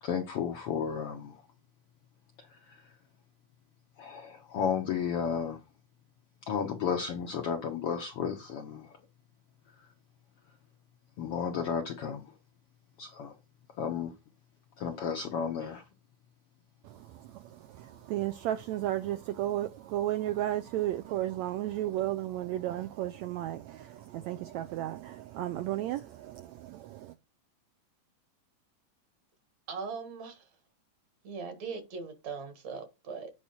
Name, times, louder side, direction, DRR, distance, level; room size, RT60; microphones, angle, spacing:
voice 1, 0.0-1.4 2.7-2.8 4.0-5.6 6.4-8.9 11.2-12.3 13.0-13.3 13.8-14.1 14.8-15.8, left 7 dB, 75° left, 1.3 m, -33 dB
voice 2, 16.8-27.1, right 13 dB, 85° right, 1.6 m, -34 dB
voice 3, 29.7-30.5 31.2-33.3, right 5 dB, 60° right, 2.6 m, -40 dB
8.8 x 4.8 x 4.2 m
omnidirectional pair, 3.7 m